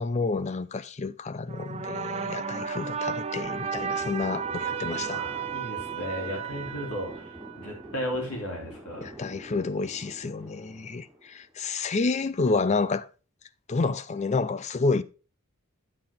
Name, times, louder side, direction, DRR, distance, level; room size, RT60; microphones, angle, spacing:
voice 1, 0.0-5.2 9.0-13.1 13.7-15.0, left 3 dB, 30° left, 0.4 m, -29 dB
sound 1, 1.5-7.9, right 7 dB, 30° right, 0.4 m, -34 dB
sound 2, 3.4-11.7, right 1 dB, ahead, 3.9 m, -46 dB
voice 2, 5.0-9.1, equal, 85° left, 3.2 m, -35 dB
8.7 x 7.6 x 3.5 m
head